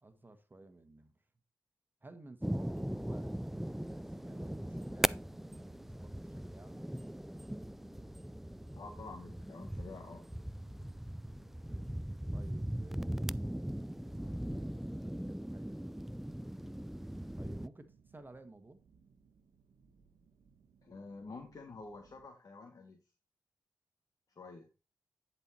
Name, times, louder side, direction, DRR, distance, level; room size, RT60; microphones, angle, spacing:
voice 1, 0.0-1.1 2.0-5.2 5.8-6.8 12.3-14.0 14.8-15.9 17.3-18.8, right 2 dB, 25° right, 1.4 m, -56 dB
sound 1, 2.4-17.7, equal, 5° right, 0.3 m, -39 dB
sound 2, 3.1-22.3, right 5 dB, 75° right, 1.3 m, -66 dB
voice 2, 8.8-10.3 20.8-23.0 24.3-24.7, left 3 dB, 55° left, 1.6 m, -49 dB
10.5 x 4.6 x 4.3 m
supercardioid pair, 45°, 7 cm